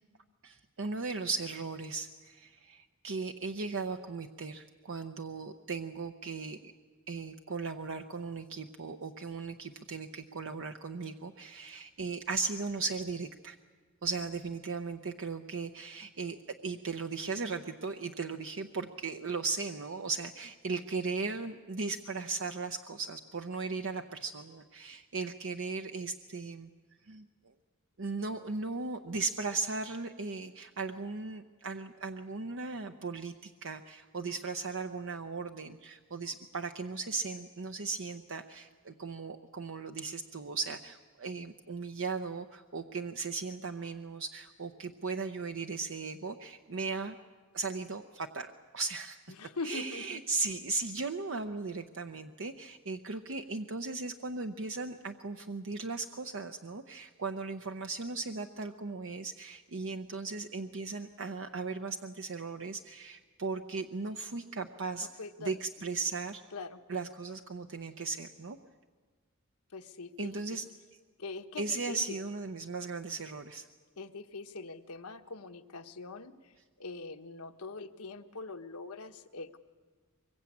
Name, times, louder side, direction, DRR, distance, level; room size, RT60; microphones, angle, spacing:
voice 1, 0.4-6.7 7.1-13.6 14.0-26.7 27.1-27.3 28.0-47.2 47.5-49.2 49.6-65.1 65.4-66.4 66.9-68.6 70.2-70.6 71.6-73.7, right 4 dB, 60° right, 6 dB, 0.8 m, -37 dB
voice 2, 49.3-50.2 65.0-65.6 66.5-66.8 69.7-70.6 71.2-72.2 74.0-79.6, left 3 dB, 85° left, 6 dB, 1.3 m, -43 dB
24.0 x 22.0 x 8.6 m, 1.5 s
head